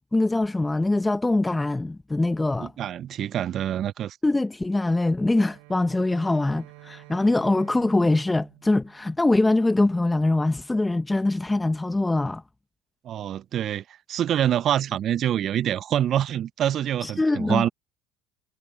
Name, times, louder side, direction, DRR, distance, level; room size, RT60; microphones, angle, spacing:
voice 1, 0.1-2.7 4.2-12.4 17.0-17.7, left 2 dB, 10° left, 1.1 m, -23 dB
voice 2, 2.6-4.2 13.0-17.7, right 10 dB, 50° right, 0.4 m, -26 dB
Bowed string instrument, 5.4-9.7, right 29 dB, 70° right, 2.7 m, -50 dB
hypercardioid pair, 75°, 0 cm